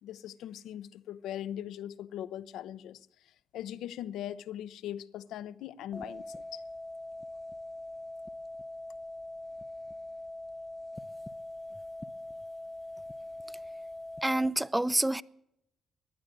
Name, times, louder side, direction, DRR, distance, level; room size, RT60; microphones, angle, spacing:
voice 1, 0.0-3.0 3.5-6.2 6.5-6.6, left 11 dB, 70° left, 0.6 m, -40 dB
sound 1, 5.9-14.5, left 1 dB, 20° left, 0.8 m, -42 dB
voice 2, 14.2-15.2, right 1 dB, 10° right, 0.6 m, -27 dB
18.5 x 11.5 x 6.6 m
hypercardioid pair, 45°, 0 cm